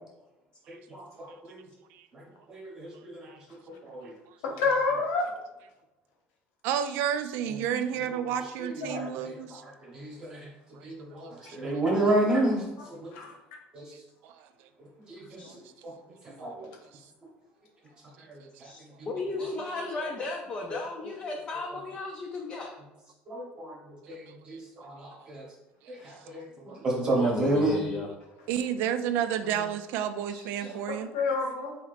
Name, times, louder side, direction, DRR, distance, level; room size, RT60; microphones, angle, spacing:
voice 1, 0.7-1.6 2.5-3.3 3.8-4.1 7.7-7.8 8.9-9.3 9.8-10.5 10.8-12.6 13.0-13.1 13.7-13.8 15.1-15.4 15.8-15.9 16.4-16.7 18.3-18.7 23.3-25.4 25.9-27.8 30.6-30.7, right 2 dB, 20° right, -3 dB, 1.0 m, -30 dB
voice 2, 4.4-5.3 8.6-9.1 11.7-12.0 12.9-13.3 15.4-15.5 30.9-31.8, left 4 dB, 80° left, 1 dB, 1.1 m, -29 dB
voice 3, 6.6-9.6 10.7-10.8 11.1-11.8 13.9-14.5 15.4-15.6 24.3-24.4 26.4-26.5 28.5-31.1, right 9 dB, 65° right, 10 dB, 0.4 m, -31 dB
voice 4, 18.6-22.8 26.0-26.3 27.1-28.1 30.3-30.7, left 3 dB, 20° left, 0 dB, 0.5 m, -35 dB
4.1 x 2.8 x 4.1 m, 0.99 s
cardioid pair, 180°, 4 cm